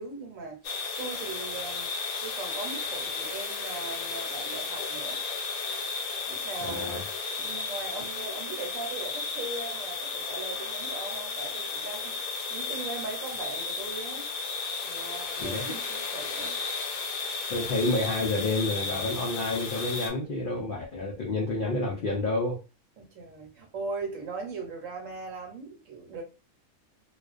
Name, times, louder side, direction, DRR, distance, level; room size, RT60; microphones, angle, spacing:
voice 1, 0.0-1.9 2.2-5.2 6.3-7.1 7.4-14.3 14.8-16.6 23.0-26.2, right 4 dB, 70° right, 1.1 m, -39 dB
sound 1, 0.6-20.1, left 4 dB, 85° left, 1.1 m, -34 dB
voice 2, 6.6-7.0 15.4-15.6 17.5-22.6, left 2 dB, 65° left, 0.5 m, -29 dB
2.4 x 2.3 x 2.3 m
omnidirectional pair, 1.4 m